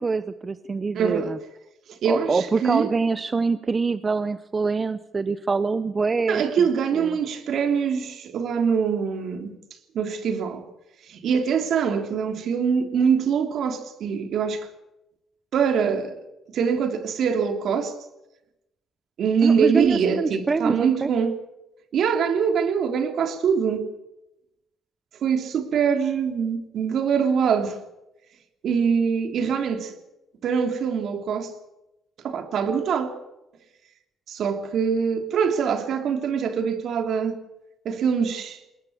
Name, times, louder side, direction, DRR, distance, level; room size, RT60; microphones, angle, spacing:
voice 1, 0.0-1.4 2.1-6.4 6.9-7.2 19.4-21.1, right 4 dB, 30° right, 0.8 m, -25 dB
voice 2, 0.9-1.4 1.9-2.9 6.3-9.5 9.9-10.7 11.1-14.7 15.5-18.0 19.2-21.4 21.9-23.9 25.2-27.8 28.6-30.0 30.4-31.5 32.2-33.2 34.3-37.4 37.8-38.6, right 6 dB, 70° right, 3.1 m, -24 dB
21.0 x 20.0 x 7.2 m
cardioid pair, 90°, 0 cm